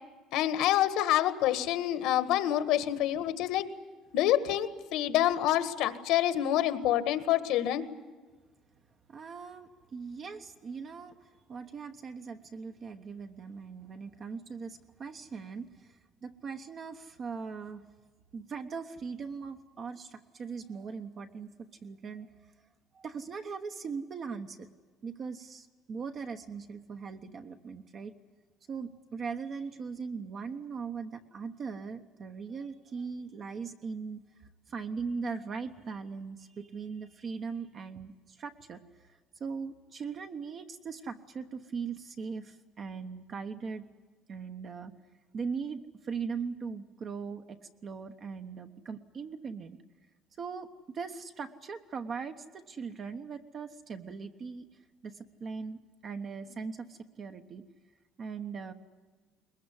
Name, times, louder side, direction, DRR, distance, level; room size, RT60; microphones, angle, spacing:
voice 1, 0.3-3.7 4.1-7.8, left 12 dB, 65° left, 11 dB, 1.7 m, -27 dB
voice 2, 9.1-17.9 18.3-22.3 22.9-24.7 25.0-28.1 28.7-43.9 44.3-44.9 45.3-49.8 50.4-54.7 55.0-57.6 58.2-58.7, right 5 dB, 30° right, 6 dB, 1.1 m, -40 dB
22.0 x 21.5 x 9.8 m, 1.3 s
cardioid pair, 175°, 0 cm